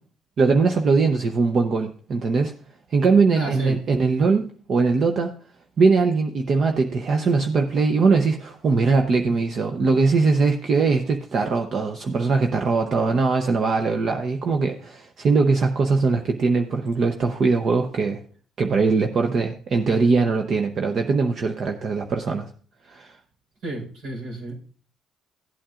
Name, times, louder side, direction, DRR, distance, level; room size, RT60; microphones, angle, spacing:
voice 1, 0.4-2.5 2.9-5.3 5.8-18.2 18.6-22.5 22.9-23.2, right 4 dB, 50° right, 4 dB, 0.8 m, -21 dB
voice 2, 3.3-3.8 23.6-24.5, right 2 dB, 90° right, -4 dB, 4.6 m, -31 dB
15.5 x 8.5 x 2.5 m, 0.43 s
cardioid pair, 90°, 0 cm